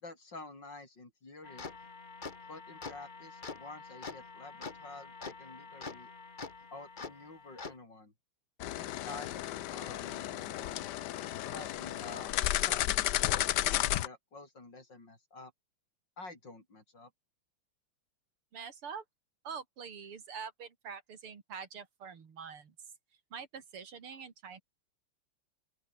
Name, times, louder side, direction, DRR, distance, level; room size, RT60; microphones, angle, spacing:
voice 1, 0.0-1.7 2.5-6.1 6.7-8.1 8.8-10.8 11.4-12.3 12.7-12.8 13.2-15.5 16.2-17.1, left 2 dB, 55° left, 6.3 m, -49 dB
sound 1, 1.4-7.8, left 4 dB, 25° left, 1.3 m, -46 dB
sound 2, 8.6-14.1, left 14 dB, 70° left, 1.0 m, -33 dB
voice 2, 18.5-19.0 19.4-22.7 23.3-24.6, right 6 dB, 80° right, 3.3 m, -45 dB
open air
omnidirectional pair, 2.4 m